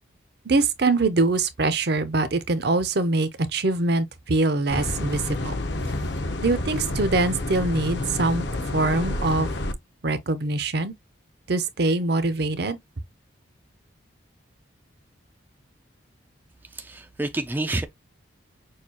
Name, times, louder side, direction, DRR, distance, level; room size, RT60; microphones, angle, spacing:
voice 1, 0.4-5.5 6.4-8.5 8.7-9.5 10.0-10.9 11.5-12.8, right 3 dB, 55° right, 0.7 m, -23 dB
sound 1, 4.7-9.7, left 1 dB, 60° left, 0.8 m, -29 dB
voice 2, 16.7-17.9, right 2 dB, 10° right, 0.3 m, -28 dB
6.4 x 2.4 x 2.8 m
head